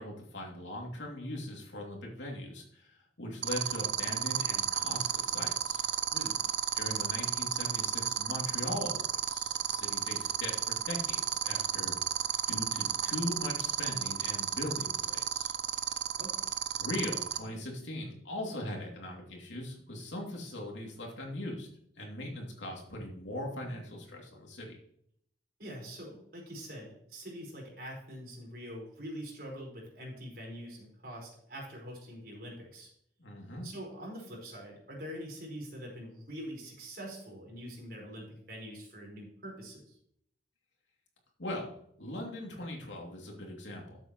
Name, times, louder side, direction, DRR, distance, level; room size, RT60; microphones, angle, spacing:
voice 1, 0.0-5.8 6.7-11.9 12.5-15.5 16.8-21.7 22.0-24.8 33.2-33.7 41.4-41.7 42.0-44.0, left 1 dB, 90° left, -1 dB, 2.9 m, -40 dB
sound 1, 3.4-17.4, right 9 dB, 70° right, 0.7 m, -31 dB
voice 2, 16.2-16.5 25.6-32.9 33.6-40.0, equal, 55° right, -2 dB, 4.8 m, -44 dB
13.0 x 7.8 x 3.2 m, 0.69 s
head